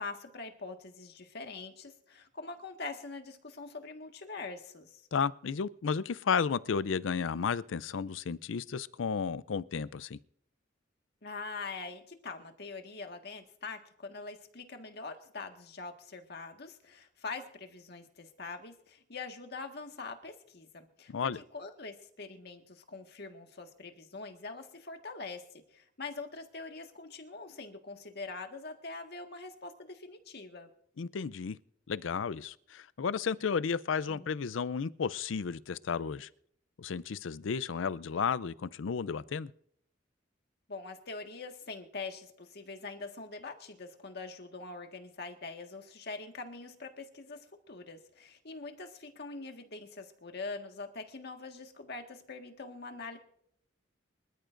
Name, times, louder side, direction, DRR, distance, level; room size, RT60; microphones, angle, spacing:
voice 1, 0.0-5.0 11.2-25.4 25.7-30.7 34.1-34.4 40.7-53.2, left 3 dB, 60° left, 1.6 m, -44 dB
voice 2, 5.1-10.2 21.1-21.4 31.0-31.6 31.9-36.3 36.8-39.5, left 6 dB, 75° left, 0.5 m, -33 dB
25.0 x 13.5 x 2.6 m
head